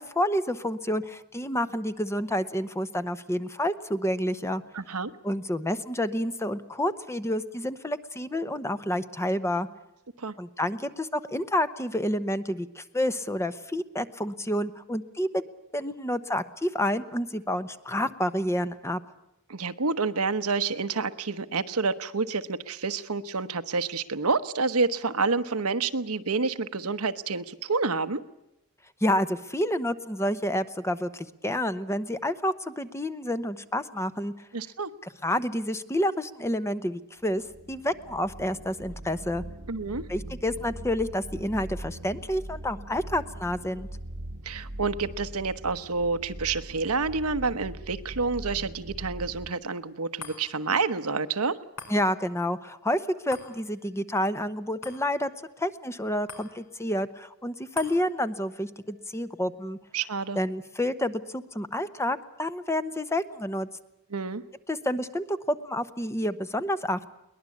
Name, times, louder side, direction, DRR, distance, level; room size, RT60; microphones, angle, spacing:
voice 1, 0.0-4.6 5.2-9.7 10.4-15.4 15.7-19.0 29.0-34.3 35.2-37.4 37.7-39.4 40.1-43.9 51.9-55.3 55.6-59.8 60.4-63.7 64.7-67.1, left 1 dB, 10° left, 12 dB, 0.9 m, -29 dB
voice 2, 4.7-5.1 10.2-10.3 19.5-28.2 34.5-34.9 39.7-40.0 44.4-51.6 59.9-60.4 64.1-64.4, right 4 dB, 90° right, 11 dB, 1.1 m, -28 dB
sound 1, 37.3-49.5, right 1 dB, 50° right, 1.2 m, -41 dB
sound 2, 50.2-62.8 63.2-63.3, left 4 dB, 75° left, 5.1 m, -50 dB
22.5 x 19.5 x 8.5 m, 0.87 s
head